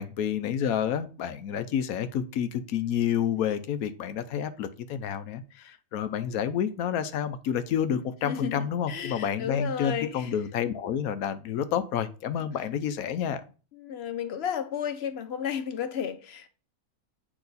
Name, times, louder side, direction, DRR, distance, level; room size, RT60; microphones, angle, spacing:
voice 1, 0.0-13.4, left 8 dB, 80° left, 1.1 m, -29 dB
voice 2, 8.2-10.3 13.7-16.5, left 8 dB, 55° left, 0.8 m, -33 dB
8.8 x 3.0 x 4.0 m
omnidirectional pair, 1.5 m